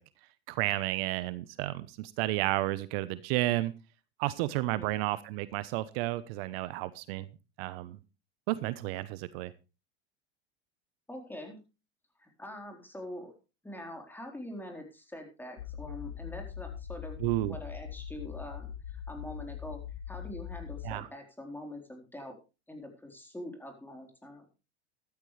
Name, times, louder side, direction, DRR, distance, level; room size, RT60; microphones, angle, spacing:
voice 1, 0.5-3.7 4.2-7.3 7.6-8.0 8.5-9.5 17.2-17.5 20.8-21.1, right 17 dB, 65° right, 15 dB, 1.0 m, -32 dB
voice 2, 11.1-11.6 12.2-13.3 13.6-19.8 20.1-22.4 22.7-24.5, left 1 dB, 5° left, 3 dB, 4.1 m, -44 dB
sound 1, 15.6-21.0, left 9 dB, 80° left, 1.2 m, -42 dB
13.5 x 13.0 x 3.3 m, 0.30 s
supercardioid pair, 115°, 33 cm